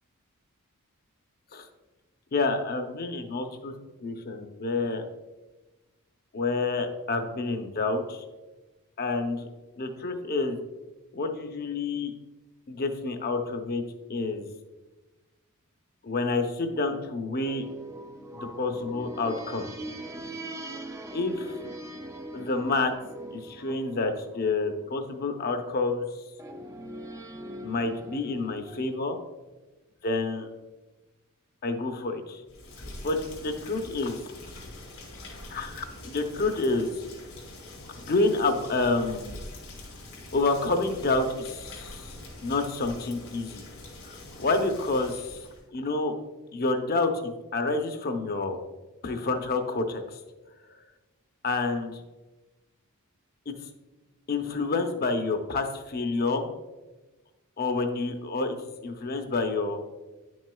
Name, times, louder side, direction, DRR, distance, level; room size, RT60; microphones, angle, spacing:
voice 1, 2.3-3.7 4.0-5.0 6.3-8.2 9.0-9.5 9.8-10.6 11.1-12.1 12.7-13.8 14.1-14.5 16.0-17.6 18.3-19.7 21.1-21.7 22.3-22.9 23.3-26.0 27.6-29.2 30.0-30.5 31.6-32.4 33.0-34.2 34.5-34.6 35.5-36.9 38.0-39.4 40.3-42.1 42.4-43.6 44.0-45.4 45.7-46.1 46.5-48.6 49.0-50.2 51.4-52.0 53.5-53.6 54.3-56.5 57.6-58.6 58.8-59.8, left 3 dB, 45° left, 6 dB, 0.6 m, -28 dB
sound 1, 17.4-25.3 26.4-29.0, right 1 dB, 15° right, 0.5 m, -42 dB
Rain, 32.4-45.6, left 2 dB, 90° left, 2.4 m, -44 dB
9.8 x 6.2 x 2.3 m, 1.2 s
head